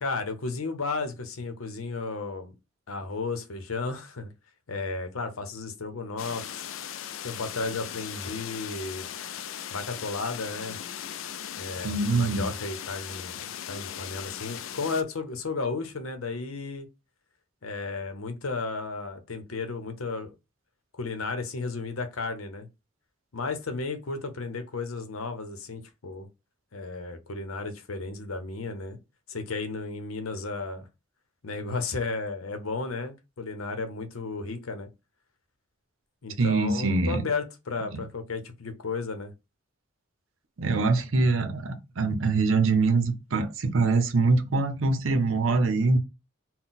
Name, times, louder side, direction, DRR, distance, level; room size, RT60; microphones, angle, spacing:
voice 1, 0.0-2.5 2.9-4.3 4.7-6.6 7.2-9.1 9.7-10.8 11.1-11.3 11.6-13.4 13.7-16.9 17.6-20.3 20.9-22.7 23.3-26.3 26.7-29.0 29.3-30.9 31.4-34.9 36.2-39.3, left 3 dB, 85° left, 0.8 m, -33 dB
sound 1, 6.2-15.0, left 10 dB, 65° left, 0.4 m, -38 dB
voice 2, 11.8-12.4 36.4-37.2 37.9-38.0 40.6-46.0, right 3 dB, 70° right, 0.7 m, -24 dB
3.9 x 2.2 x 4.0 m
head